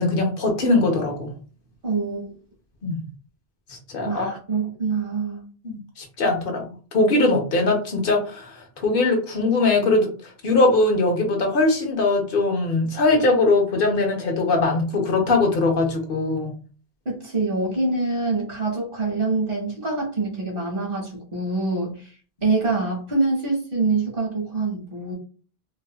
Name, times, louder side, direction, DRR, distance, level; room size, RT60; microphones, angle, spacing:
voice 1, 0.0-1.3 2.8-3.1 3.7-4.3 5.6-6.6 6.9-10.1 10.4-16.5, left 2 dB, 60° left, 1 dB, 1.1 m, -21 dB
voice 2, 1.8-2.4 4.1-5.5 17.0-22.1 22.4-25.1, right 3 dB, 60° right, -2 dB, 1.4 m, -25 dB
4.1 x 2.2 x 2.3 m, 0.37 s
omnidirectional pair, 1.0 m